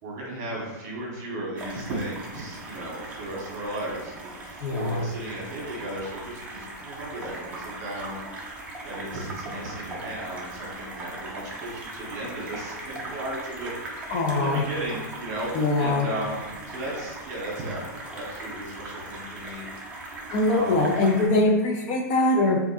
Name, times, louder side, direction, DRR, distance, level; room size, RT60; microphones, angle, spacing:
voice 1, 0.0-8.2 8.8-15.5 15.8-17.8 18.1-19.6 20.4-21.0, right 1 dB, 35° right, -3 dB, 1.4 m, -35 dB
sound 1, 1.6-21.3, right 2 dB, 15° right, 0.6 m, -39 dB
voice 2, 4.6-5.1 14.1-14.6 15.5-16.1 20.3-22.6, left 2 dB, 30° left, 0 dB, 0.4 m, -22 dB
4.7 x 2.5 x 2.6 m, 1.2 s
hypercardioid pair, 155°, 10 cm